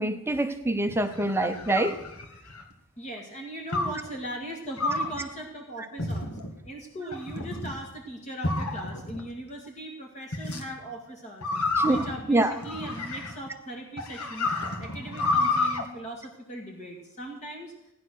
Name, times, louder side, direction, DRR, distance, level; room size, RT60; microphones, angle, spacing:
voice 1, 0.0-1.9 11.8-12.0 12.3-12.5, right 2 dB, 10° right, 7 dB, 0.7 m, -25 dB
sound 1, 0.9-2.7 3.7-4.1 4.8-5.2 6.0-6.5 7.1-7.7 8.4-9.2 10.3-10.6 11.4-13.5 14.0-15.8, left 2 dB, 80° left, 1.9 m, -29 dB
voice 2, 3.0-6.4 6.6-11.5 11.9-14.5 14.8-17.7, right 1 dB, 30° left, 1 dB, 2.0 m, -39 dB
16.5 x 10.5 x 6.3 m, 0.88 s
head